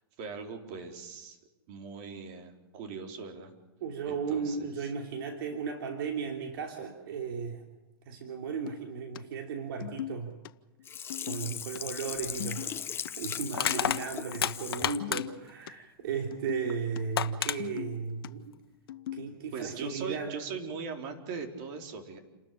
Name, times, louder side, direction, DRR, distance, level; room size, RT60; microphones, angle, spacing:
voice 1, 0.2-1.4 1.7-3.5 4.1-4.9 19.5-22.2, right 5 dB, 50° right, 3 dB, 4.3 m, -40 dB
voice 2, 3.8-7.6 8.1-10.3 11.3-12.7 13.2-18.5 19.1-20.4, right 6 dB, 70° right, 3 dB, 3.1 m, -35 dB
sound 1, 5.5-5.6 8.5-9.2 9.5-10.5 10.8-11.8 12.1-13.1 13.5-14.4 14.7-15.7 16.0-17.0 17.3-18.3 18.9-19.3, left 14 dB, 65° left, 0.9 m, -41 dB
Sink (filling or washing), 10.8-15.0 15.5-15.6, left 8 dB, 20° left, 1.0 m, -38 dB
Crushing, 12.2-12.3 13.5-15.5 16.7-16.8 17.2-17.6, left 9 dB, 90° left, 1.2 m, -30 dB
29.0 x 13.0 x 8.8 m, 1.1 s
hypercardioid pair, 130°, 12 cm